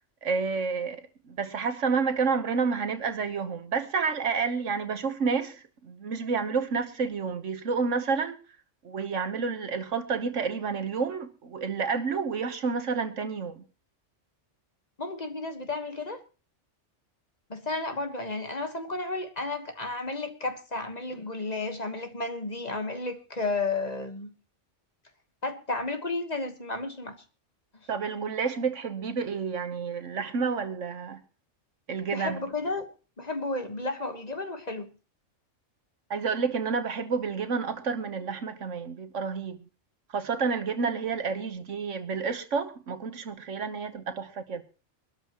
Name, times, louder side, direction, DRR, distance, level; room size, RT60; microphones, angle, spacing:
voice 1, 0.2-1.0 1.4-8.4 8.8-13.6 27.9-31.2 31.9-32.4 36.1-39.6 40.1-44.6, right 5 dB, 75° right, 1.6 m, -29 dB
voice 2, 15.0-16.2 17.5-24.3 25.4-27.2 32.1-32.9 33.2-34.9, left 3 dB, 35° left, 1.5 m, -32 dB
23.5 x 13.0 x 3.0 m
omnidirectional pair, 1.3 m